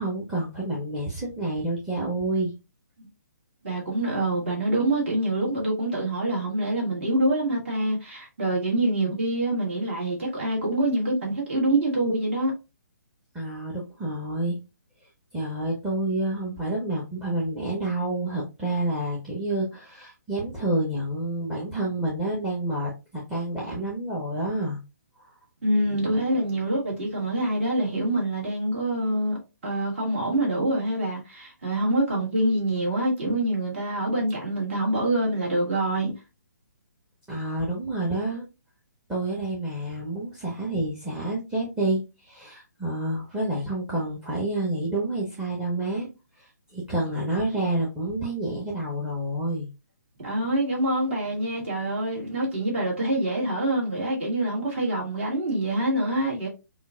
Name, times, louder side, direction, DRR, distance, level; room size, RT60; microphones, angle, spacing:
voice 1, 0.0-2.5 13.3-14.6 15.3-24.8 25.2-25.3 37.3-38.5 39.1-46.1 46.4-49.7, right 2 dB, 5° right, 0.8 m, -29 dB
voice 2, 3.6-12.5 25.6-36.1 50.2-56.5, right 1 dB, 45° right, 1.8 m, -25 dB
5.5 x 2.4 x 2.3 m
figure-of-eight pair, 135°, 9 cm